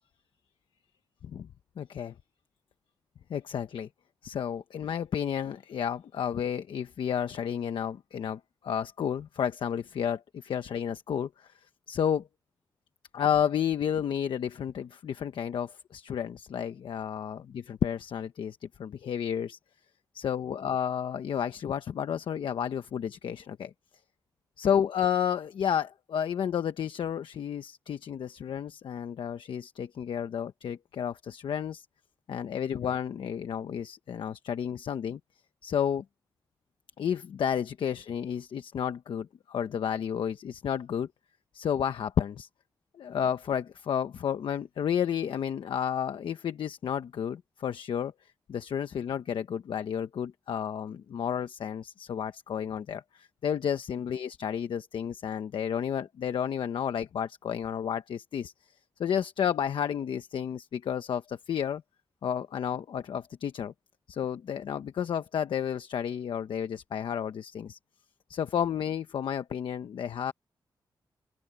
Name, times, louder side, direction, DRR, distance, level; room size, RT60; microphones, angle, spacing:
voice 1, 1.8-2.1 3.3-3.9 4.2-11.5 11.9-12.3 13.1-19.6 20.1-23.7 24.6-31.9 32.3-35.2 35.6-36.0 37.0-41.1 41.5-42.5 42.9-48.1 48.5-58.5 59.0-61.8 62.2-63.7 64.1-67.8 68.3-70.3, left 8 dB, 85° left, 1.0 m, -31 dB
open air
wide cardioid pair, 170°, 8 cm